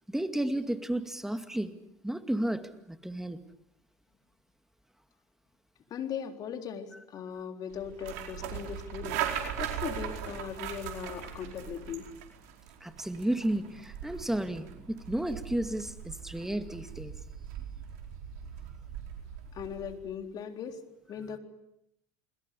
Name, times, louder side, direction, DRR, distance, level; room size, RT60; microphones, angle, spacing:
voice 1, 0.1-1.7 2.0-3.4 12.8-17.1, right 1 dB, 5° right, 2.3 m, -32 dB
voice 2, 5.9-12.1 19.5-20.8 21.1-21.4, left 8 dB, 50° left, 3.9 m, -39 dB
sound 1, 7.7-20.0, right 9 dB, 80° right, 4.7 m, -40 dB
29.5 x 21.0 x 8.4 m
hypercardioid pair, 85°, 9 cm